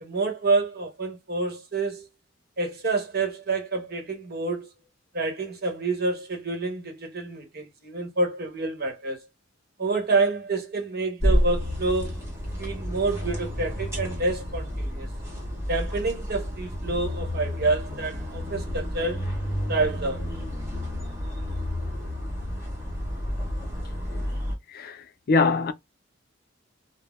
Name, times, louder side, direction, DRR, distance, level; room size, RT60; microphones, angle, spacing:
voice 1, 0.0-2.1 2.6-4.7 5.1-9.2 9.8-12.2 12.6-15.1 15.7-19.3 19.7-20.3, right 3 dB, 50° right, 1.0 m, -28 dB
sound 1, 11.2-24.6, equal, 15° right, 1.0 m, -30 dB
voice 2, 24.7-25.7, left 4 dB, 50° left, 0.4 m, -23 dB
3.7 x 2.0 x 2.3 m
head